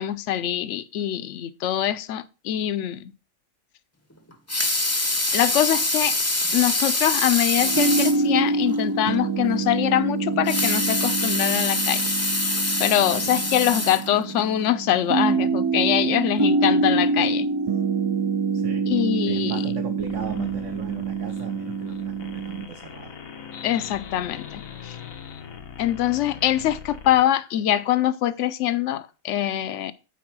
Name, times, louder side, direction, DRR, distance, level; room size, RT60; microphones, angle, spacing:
voice 1, 0.0-3.1 5.3-6.2 6.5-12.0 12.8-17.5 18.9-19.6 23.6-25.0 25.8-29.9, left 12 dB, 65° left, 0.9 m, -23 dB
Water tap faucet / Sink (filling or washing) / Liquid, 4.3-8.3 8.7-8.8 9.1-9.2 10.3-14.5 15.1-15.2, left 2 dB, 15° left, 0.7 m, -25 dB
Multiple Crystal Bowl Rhythm, 7.6-22.7, right 3 dB, 35° right, 0.4 m, -25 dB
voice 2, 18.5-18.8 19.2-23.2, right 5 dB, 65° right, 1.4 m, -36 dB
sound 1, 20.0-27.2, left 7 dB, 90° left, 1.4 m, -41 dB
9.5 x 4.4 x 6.0 m
omnidirectional pair, 1.4 m